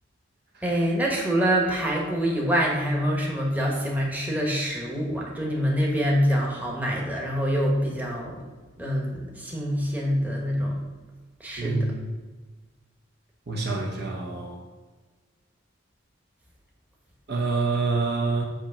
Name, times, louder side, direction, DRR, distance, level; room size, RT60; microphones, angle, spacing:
voice 1, 0.6-8.5 8.8-10.7 11.4-11.9, equal, 10° right, -3 dB, 1.1 m, -25 dB
voice 2, 11.6-12.0 13.5-14.6 17.3-18.5, right 3 dB, 55° right, 0 dB, 0.9 m, -26 dB
8.0 x 3.0 x 5.6 m, 1.3 s
head